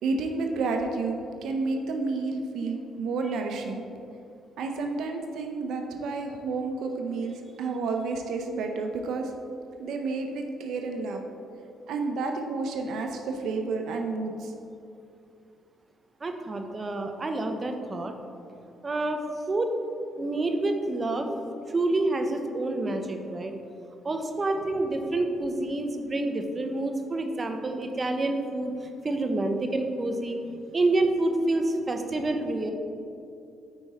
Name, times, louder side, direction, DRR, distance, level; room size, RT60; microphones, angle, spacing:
voice 1, 0.0-3.8 4.6-9.3 9.8-11.2 11.9-14.5, right 3 dB, 80° right, 4 dB, 0.6 m, -30 dB
voice 2, 16.2-18.1 18.8-19.2 19.5-19.7 20.2-21.3 21.7-23.6 24.0-28.7 29.0-30.4 30.7-32.7, right 2 dB, 30° right, 5 dB, 0.8 m, -28 dB
8.7 x 4.8 x 4.2 m, 2.7 s
cardioid pair, 90°, 0 cm